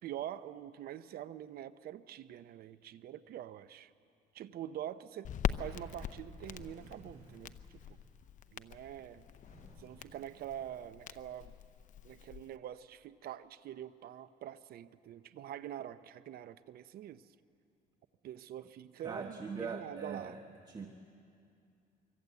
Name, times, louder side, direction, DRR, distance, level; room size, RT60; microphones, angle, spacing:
voice 1, 0.0-3.9 4.3-5.3 5.6-8.0 8.5-9.3 9.8-11.5 12.0-17.3 18.2-20.4, right 11 dB, 65° right, 14 dB, 0.7 m, -45 dB
Crackle, 5.2-12.6, left 9 dB, 50° left, 0.8 m, -42 dB
sound 1, 6.4-8.3 9.4-11.2, right 2 dB, 40° right, 6.1 m, -60 dB
voice 2, 19.0-20.9, right 4 dB, 25° right, 5 dB, 1.6 m, -42 dB
25.5 x 23.5 x 8.3 m, 2.5 s
cardioid pair, 110°, 17 cm